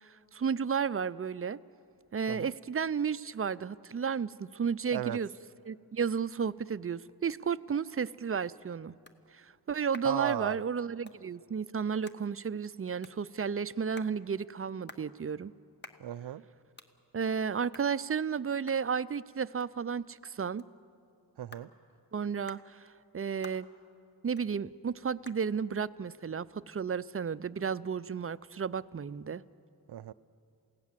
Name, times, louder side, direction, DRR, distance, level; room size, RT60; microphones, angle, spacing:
voice 1, 0.0-1.6 2.1-5.3 5.7-9.0 9.3-15.5 17.1-20.7 22.1-22.9 23.1-23.7 24.2-29.4, right 6 dB, 35° right, 17 dB, 0.5 m, -33 dB
sound 1, 8.2-27.5, left 2 dB, 25° left, 1.3 m, -58 dB
voice 2, 10.0-10.6 16.0-16.4 21.4-21.7 29.9-30.1, right 11 dB, 90° right, 14 dB, 0.5 m, -36 dB
28.5 x 17.0 x 7.5 m, 2.5 s
wide cardioid pair, 65°, 38 cm